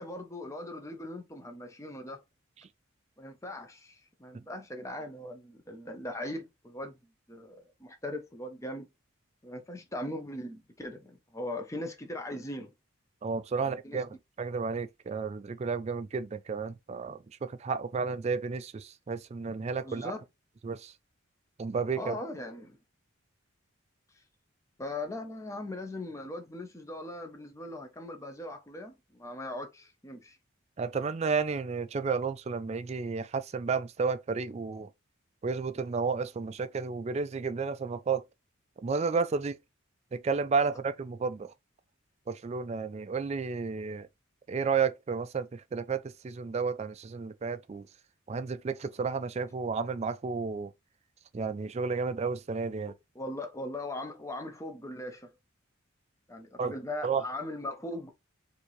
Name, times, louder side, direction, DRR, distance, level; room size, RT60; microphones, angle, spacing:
voice 1, 0.0-2.2 3.2-7.0 7.3-8.9 9.4-12.7 13.6-14.0 19.8-20.2 22.0-22.8 24.8-30.4 52.9-55.3 56.3-58.1, left 1 dB, 15° left, 0.7 m, -39 dB
voice 2, 13.2-14.1 14.4-20.1 20.6-20.9 21.6-22.2 30.8-34.9 35.4-38.2 38.8-39.6 40.1-41.5 42.3-44.1 44.5-47.9 48.3-50.7 51.3-52.9 56.6-56.7 57.0-57.2, right 5 dB, 30° right, 0.3 m, -32 dB
4.5 x 2.7 x 3.0 m
head